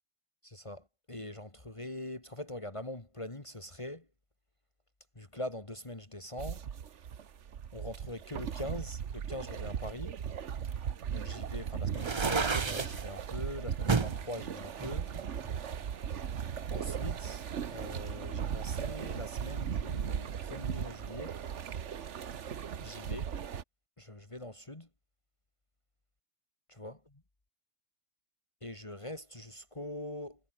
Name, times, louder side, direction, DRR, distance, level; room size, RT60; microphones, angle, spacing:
voice 1, 0.4-4.1 5.2-6.7 7.7-10.2 11.1-15.1 16.7-17.4 17.7-21.4 22.8-23.3 24.0-24.9 26.8-27.0 28.6-30.4, left 1 dB, 25° left, 2.3 m, -43 dB
sound 1, 6.4-23.6, right 8 dB, 75° right, 1.4 m, -37 dB
jf Garbage Can, 11.9-13.0 13.9-14.2 14.8-15.9, right 4 dB, 25° right, 0.7 m, -31 dB
omnidirectional pair, 1.2 m